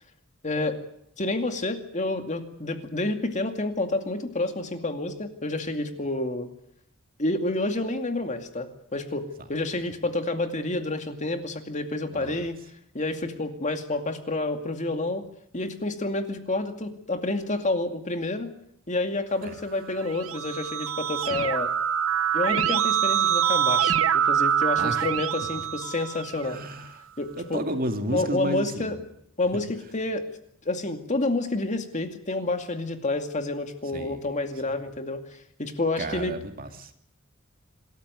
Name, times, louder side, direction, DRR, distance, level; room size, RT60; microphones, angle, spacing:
voice 1, 0.4-0.8 1.2-6.5 7.2-12.6 12.9-15.2 15.5-18.5 18.9-21.7 22.3-26.6 27.2-27.6 28.1-29.0 29.4-30.3 30.7-35.2 35.6-36.3, left 2 dB, 35° left, 2.3 m, -29 dB
Keyboard (musical), 19.9-26.6, right 9 dB, 85° right, 1.0 m, -25 dB
voice 2, 26.4-26.9 27.5-29.0 33.9-34.4 36.0-36.9, right 1 dB, 45° right, 2.3 m, -32 dB
26.0 x 13.5 x 9.6 m
head